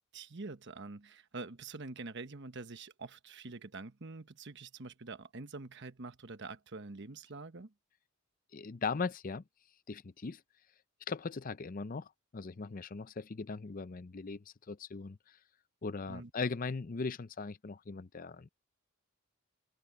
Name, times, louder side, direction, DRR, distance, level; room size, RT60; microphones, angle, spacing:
voice 1, 0.1-7.7 16.1-16.3, right 3 dB, 55° right, 1.2 m, -46 dB
voice 2, 8.5-9.4 9.9-10.4 11.1-15.4 15.8-18.5, left 4 dB, 40° left, 0.5 m, -39 dB
head